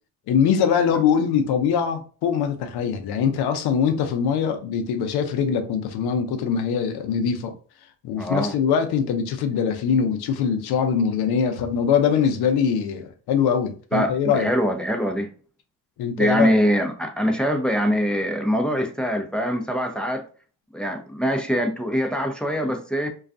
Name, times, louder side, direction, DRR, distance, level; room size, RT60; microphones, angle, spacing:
voice 1, 0.3-7.5 8.0-14.5 16.0-16.6, left 7 dB, 65° left, 0.6 m, -22 dB
voice 2, 8.2-8.6 13.9-15.3 16.2-20.2 20.7-23.1, equal, ahead, 0.5 m, -23 dB
2.3 x 2.3 x 2.5 m
supercardioid pair, 60°, 41 cm